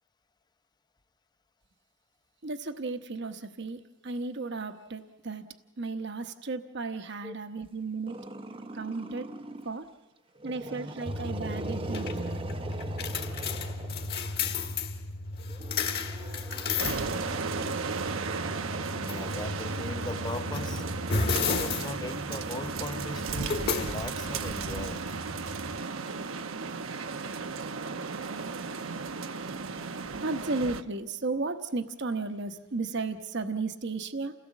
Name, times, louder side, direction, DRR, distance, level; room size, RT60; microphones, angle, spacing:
voice 1, 2.4-5.5 5.8-8.2 8.7-9.3 9.6-9.9 10.4-12.7 30.2-34.3, right 3 dB, 60° right, 8 dB, 1.0 m, -34 dB
Growling, 8.1-9.8 10.3-14.5 15.5-22.0, right 2 dB, 25° right, 0.7 m, -42 dB
sound 1, 11.1-25.8, left 4 dB, 50° left, 1.8 m, -34 dB
sound 2, 16.8-30.8, right 4 dB, 90° right, 0.9 m, -35 dB
voice 2, 18.8-20.9 21.6-25.1, left 2 dB, 20° left, 9 dB, 0.8 m, -39 dB
29.0 x 17.0 x 7.2 m, 1.2 s
head